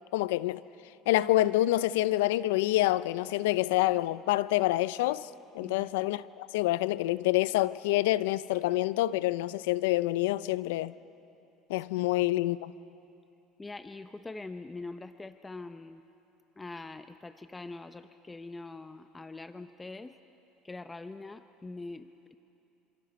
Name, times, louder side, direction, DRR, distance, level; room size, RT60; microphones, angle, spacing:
voice 1, 0.1-0.6 1.1-5.3 5.5-10.9 11.7-12.7, left 16 dB, 85° left, 0.5 m, -27 dB
voice 2, 5.6-5.9 12.0-12.1 13.6-16.0 16.6-20.1 20.6-22.3, left 3 dB, 15° left, 0.6 m, -43 dB
26.5 x 26.5 x 5.2 m
supercardioid pair, 100°, 0 cm